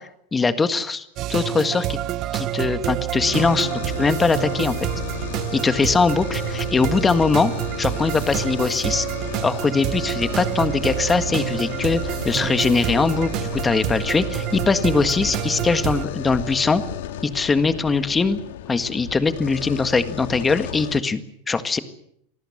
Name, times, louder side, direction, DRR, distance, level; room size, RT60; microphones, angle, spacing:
voice 1, 0.0-2.0 2.3-3.7 4.0-4.9 5.5-7.5 7.8-9.1 9.4-16.8 17.2-18.4 18.7-21.8, left 4 dB, 10° left, 11 dB, 1.7 m, -21 dB
sound 1, 1.2-16.0, right 13 dB, 35° right, 1.2 m, -28 dB
sound 2, 3.2-21.0, left 10 dB, 75° left, 2.3 m, -33 dB
27.5 x 19.5 x 7.3 m, 0.71 s
supercardioid pair, 155°, 0 cm